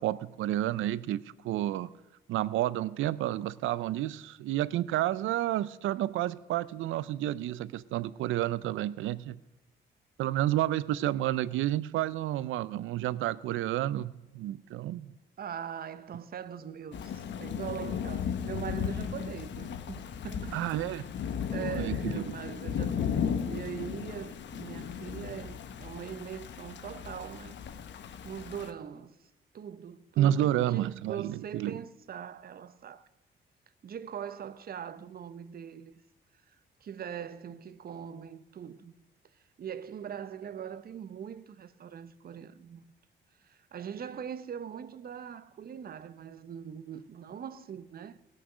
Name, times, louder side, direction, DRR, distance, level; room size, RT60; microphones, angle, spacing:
voice 1, 0.0-1.9 2.3-9.4 10.2-15.1 20.5-21.0 21.5-22.2 30.2-31.8, right 13 dB, 80° right, 0.5 m, -30 dB
voice 2, 15.4-20.9 21.2-27.6 28.2-29.2 29.5-33.1 33.8-36.0 36.8-38.9 39.6-42.8 43.4-48.2, right 8 dB, 50° right, 0.8 m, -41 dB
Thunder / Rain, 16.9-28.7, left 7 dB, 65° left, 1.0 m, -35 dB
19.0 x 6.4 x 6.2 m
cardioid pair, 90°, 20 cm